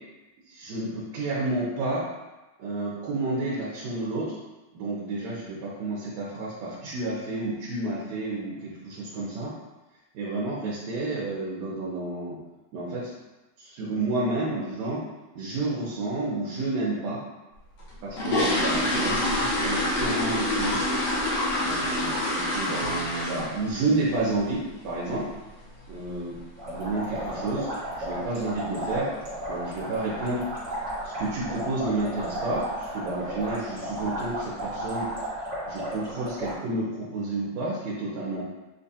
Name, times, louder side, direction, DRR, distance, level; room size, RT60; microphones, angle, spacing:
voice 1, 0.5-2.0 2.6-4.4 4.7-9.5 10.1-12.4 12.7-13.1 13.6-15.0 15.3-17.2 18.0-20.8 21.6-25.3 25.9-26.3 26.7-27.7 28.0-29.1 29.5-30.4 31.2-35.1 35.7-38.4, right 2 dB, 70° right, -6 dB, 2.0 m, -30 dB
sound 1, 17.8-23.7 24.0-24.3 24.6-24.7 25.1-25.2 25.6-25.8 26.1-26.2 26.8-26.9 27.1-27.3 27.8-28.1 28.4-28.5 28.9-29.1 29.4-29.5 29.9-30.0 30.6-31.0 31.3-31.6 32.0-32.1 32.5-32.6 33.3-33.5 33.9-34.4 34.8-34.9, left 1 dB, 65° left, 1.8 m, -27 dB
sound 2, 26.6-36.6, right 1 dB, 45° right, 1.0 m, -34 dB
7.2 x 2.4 x 2.7 m, 1.1 s
omnidirectional pair, 3.4 m